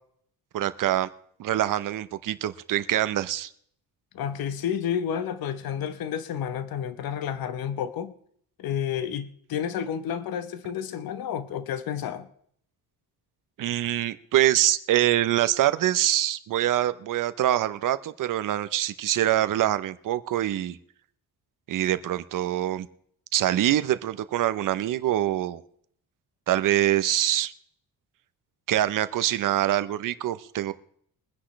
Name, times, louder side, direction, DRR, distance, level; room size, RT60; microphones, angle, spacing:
voice 1, 0.5-1.1 1.4-3.5 13.6-20.8 21.7-22.9 23.3-25.6 26.5-27.5 28.7-30.7, right 13 dB, 60° right, 13 dB, 0.8 m, -24 dB
voice 2, 4.1-8.1 8.6-12.3, left 8 dB, 70° left, 12 dB, 1.1 m, -30 dB
23.5 x 10.0 x 3.2 m, 0.64 s
cardioid pair, 180°, 37 cm